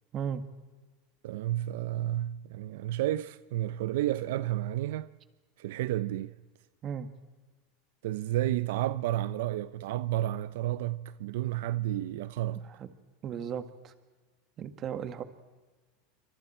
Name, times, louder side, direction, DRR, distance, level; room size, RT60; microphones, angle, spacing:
voice 1, 1.2-5.1 5.6-6.4 8.0-12.6, right 14 dB, 75° right, 0.7 m, -31 dB
voice 2, 13.2-13.9 14.6-15.2, right 8 dB, 30° right, 1.9 m, -36 dB
28.5 x 25.0 x 4.5 m
supercardioid pair, 145°, 0 cm